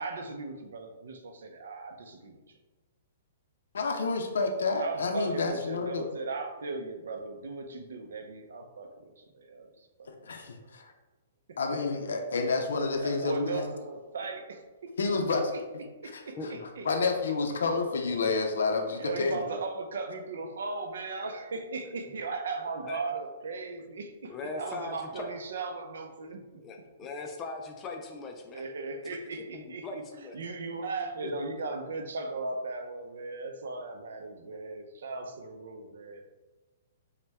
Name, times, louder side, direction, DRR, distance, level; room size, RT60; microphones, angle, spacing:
voice 1, 0.0-2.6 4.7-10.1 10.6-10.7 11.5-11.8 13.0-14.4 15.5-15.6 16.0-16.9 18.9-26.4 28.5-30.0 30.3-36.2, right 3 dB, 80° right, 6 dB, 0.6 m, -37 dB
voice 2, 3.7-6.1 10.0-10.9 11.6-13.6 15.0-15.4 16.1-16.2 16.8-19.4, left 4 dB, 90° left, 4 dB, 0.6 m, -29 dB
voice 3, 16.4-16.7 21.8-21.9 22.8-23.0 24.2-25.4 26.6-28.6 29.5-30.4 31.2-31.3, left 3 dB, 15° left, 3 dB, 0.4 m, -40 dB
5.5 x 2.2 x 3.5 m, 1.2 s
hypercardioid pair, 165°, 0 cm